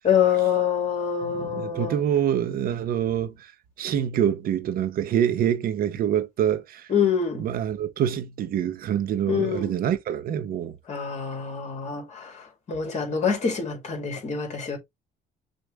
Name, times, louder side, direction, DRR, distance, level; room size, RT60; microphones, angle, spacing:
voice 1, 0.0-2.0 6.9-7.4 9.3-9.8 10.9-14.8, left 7 dB, 40° left, 2.4 m, -25 dB
voice 2, 1.2-3.5 3.8-6.9 7.4-10.8, right 9 dB, 60° right, 0.8 m, -26 dB
6.3 x 2.5 x 3.3 m
cardioid pair, 110°, 17 cm